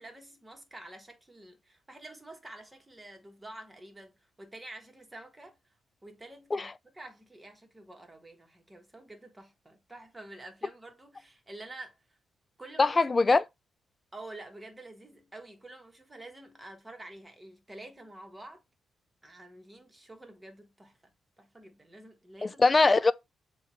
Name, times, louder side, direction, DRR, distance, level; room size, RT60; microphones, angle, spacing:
voice 1, 0.0-5.6 6.0-12.2 12.6-13.4 14.1-18.6 19.2-22.6, right 2 dB, 15° right, 1.2 m, -48 dB
voice 2, 12.8-13.4 22.4-23.1, left 3 dB, 30° left, 0.3 m, -22 dB
6.9 x 2.4 x 3.1 m
cardioid pair, 95°, 0 cm